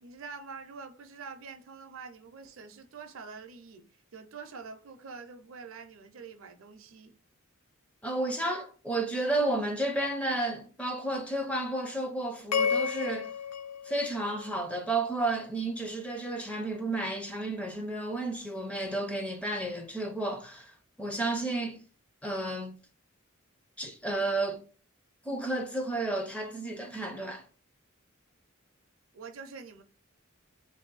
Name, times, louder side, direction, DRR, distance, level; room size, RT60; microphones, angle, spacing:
voice 1, 0.0-7.1 29.1-29.8, right 5 dB, 65° right, 0.5 m, -46 dB
voice 2, 8.0-13.3 13.8-21.8 22.2-22.8 23.8-24.6 25.2-27.5, right 2 dB, 5° left, 0.5 m, -32 dB
sound 1, 12.5-14.9, left 6 dB, 80° left, 0.3 m, -32 dB
2.9 x 2.7 x 3.9 m
head